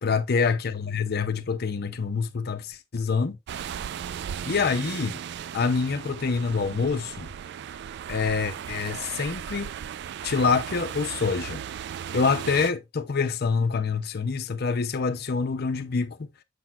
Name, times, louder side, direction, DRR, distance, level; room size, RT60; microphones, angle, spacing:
voice 1, 0.0-3.4 4.5-5.2 5.5-7.3 8.1-9.7 10.2-11.6 12.1-16.3, left 5 dB, 50° left, 0.6 m, -26 dB
sound 1, 3.5-12.7, right 8 dB, 55° right, 0.3 m, -36 dB
6.7 x 6.0 x 2.3 m
head